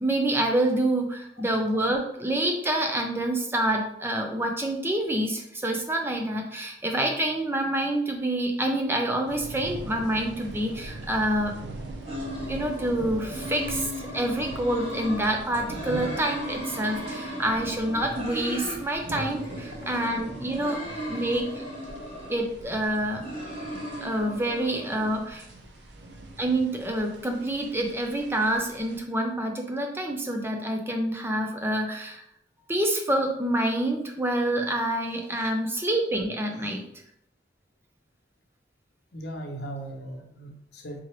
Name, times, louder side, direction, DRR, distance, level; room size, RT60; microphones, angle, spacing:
voice 1, 0.0-11.5 12.4-20.8 21.1-21.6 22.3-23.2 24.0-25.5 26.4-32.2 32.7-36.9, right 1 dB, 15° right, 2 dB, 0.4 m, -27 dB
sound 1, 9.3-29.0, right 2 dB, 65° right, 0.7 m, -42 dB
sound 2, 12.0-15.2 15.6-18.8 19.1-22.4 22.9-25.1, equal, 30° right, 0.8 m, -36 dB
voice 2, 21.1-21.4 36.5-36.7 39.1-41.0, right 1 dB, 60° left, 3 dB, 0.7 m, -39 dB
3.7 x 3.0 x 3.1 m, 0.73 s
head